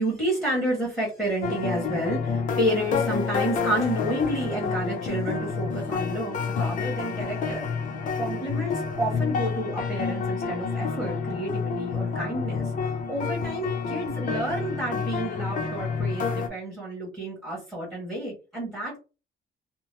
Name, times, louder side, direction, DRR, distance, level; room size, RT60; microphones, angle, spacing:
voice 1, 0.0-7.6 8.2-19.0, right 1 dB, ahead, -4 dB, 1.3 m, -30 dB
sound 1, 1.4-16.5, left 5 dB, 45° left, 0.5 m, -29 dB
2.8 x 2.1 x 3.2 m, 0.30 s
cardioid pair, 175°, 19 cm